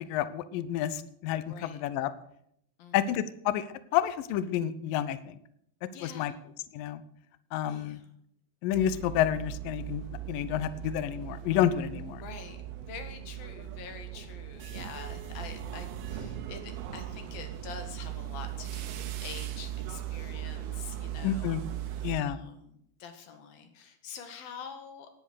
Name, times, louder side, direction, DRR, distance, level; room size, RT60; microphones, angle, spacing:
voice 1, 0.0-2.1 2.9-3.7 3.9-5.4 6.0-6.3 6.7-7.0 7.5-8.0 8.6-12.2 21.2-21.6 22.0-22.4, left 11 dB, 90° left, 13 dB, 1.9 m, -29 dB
voice 2, 1.5-1.8 2.8-3.0 5.9-6.4 7.7-8.1 12.2-22.0 22.2-25.1, left 6 dB, 60° left, 7 dB, 3.4 m, -46 dB
sound 1, 8.7-22.2, right 12 dB, 70° right, 2.9 m, -39 dB
18.0 x 10.5 x 6.5 m, 0.72 s
omnidirectional pair, 5.1 m